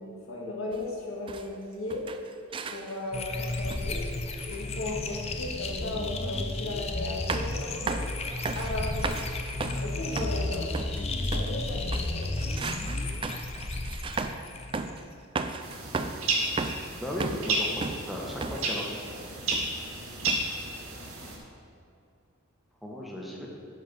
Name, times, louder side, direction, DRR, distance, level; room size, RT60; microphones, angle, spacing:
voice 1, 0.0-2.0 2.7-4.0 4.5-8.0 8.5-9.2 9.7-10.7 11.3-12.9, left 2 dB, 75° left, -3 dB, 2.0 m, -36 dB
sound 1, 0.7-0.9 1.3-1.6 1.9-3.1 3.7-4.0 4.4-4.6 5.8-5.9 7.3-7.6 7.9-8.2 8.4-11.6 11.9-14.5 14.7-15.0 15.3-16.3 16.6-17.5 17.8-18.7 19.5-19.8 20.3-20.5, right 4 dB, 25° right, 0.3 m, -35 dB
sound 2, 3.1-15.1, left 2 dB, 30° left, 0.6 m, -33 dB
sound 3, 15.6-21.4, right 2 dB, 85° right, 2.0 m, -32 dB
voice 2, 17.0-18.8 22.8-23.5, left 1 dB, ahead, -3 dB, 1.3 m, -35 dB
10.5 x 5.3 x 6.1 m, 2.5 s
head